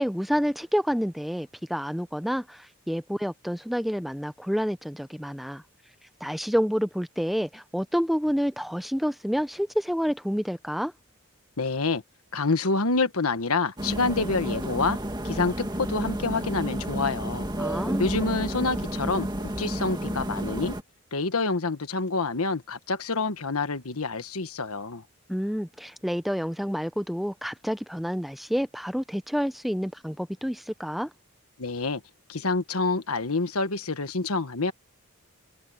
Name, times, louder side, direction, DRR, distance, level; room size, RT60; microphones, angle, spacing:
voice 1, 0.0-5.6 6.2-10.9 17.6-18.1 25.3-31.1, equal, ahead, 0.5 m, -28 dB
voice 2, 11.6-12.0 12.3-15.0 15.2-17.5 18.0-20.8 21.1-25.0 31.6-32.0 32.3-34.7, left 3 dB, 85° left, 1.4 m, -27 dB
sound 1, 13.8-20.8, right 1 dB, 20° right, 2.3 m, -31 dB
head